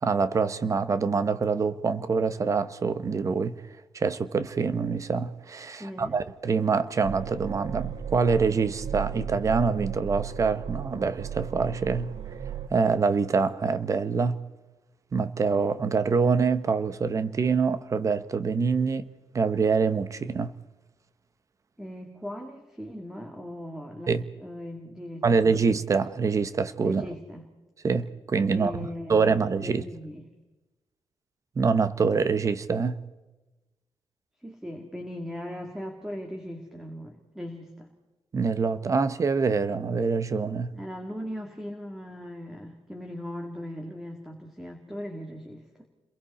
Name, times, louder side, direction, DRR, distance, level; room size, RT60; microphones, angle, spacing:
voice 1, 0.0-3.6 3.9-12.1 12.7-14.4 15.1-19.0 19.3-20.5 24.1-24.2 25.2-27.0 27.8-28.7 29.1-29.8 31.6-33.0 38.3-40.7, right 5 dB, 35° right, 1.0 m, -25 dB
voice 2, 5.8-6.2 21.8-25.6 26.8-27.4 28.5-30.3 34.4-37.9 40.7-45.9, equal, 5° right, 2.1 m, -39 dB
sound 1, 7.0-12.7, right 9 dB, 70° right, 1.0 m, -35 dB
29.5 x 22.5 x 4.3 m
wide cardioid pair, 170°, 10 cm